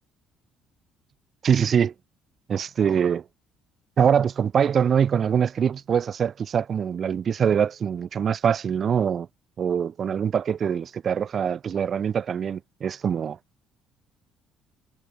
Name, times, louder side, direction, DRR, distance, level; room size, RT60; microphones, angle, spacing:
voice 1, 1.4-1.9 2.5-3.2 4.0-9.3 9.6-13.4, right 7 dB, 50° right, 3.0 m, -23 dB
hypercardioid pair, 60°, 0 cm